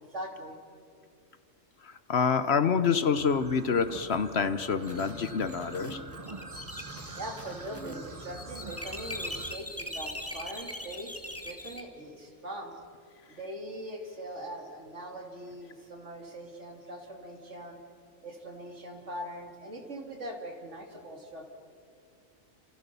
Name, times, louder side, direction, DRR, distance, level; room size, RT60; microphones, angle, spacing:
voice 1, 0.1-0.6 7.2-12.7 13.3-17.8 18.2-21.5, right 1 dB, 65° right, 3.1 m, -41 dB
voice 2, 1.8-6.0, left 6 dB, 60° left, 1.1 m, -27 dB
sound 1, 3.2-9.6, right 3 dB, 30° right, 1.2 m, -45 dB
sound 2, 4.8-11.8, left 1 dB, 10° left, 1.8 m, -41 dB
30.0 x 27.0 x 6.9 m
omnidirectional pair, 1.3 m